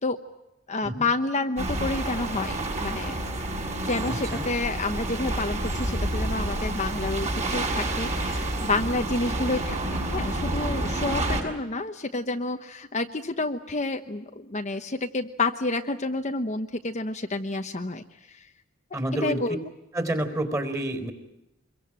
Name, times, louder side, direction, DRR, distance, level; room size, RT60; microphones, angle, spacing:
voice 1, 0.7-3.3 3.9-18.0 19.2-19.6, left 3 dB, 35° left, 6 dB, 1.1 m, -29 dB
sound 1, 1.6-11.4, right 1 dB, 35° right, 6.5 m, -29 dB
voice 2, 4.1-4.4 18.9-19.6 19.9-21.1, right 1 dB, 15° right, 8 dB, 4.1 m, -29 dB
25.5 x 23.0 x 8.9 m, 0.91 s
head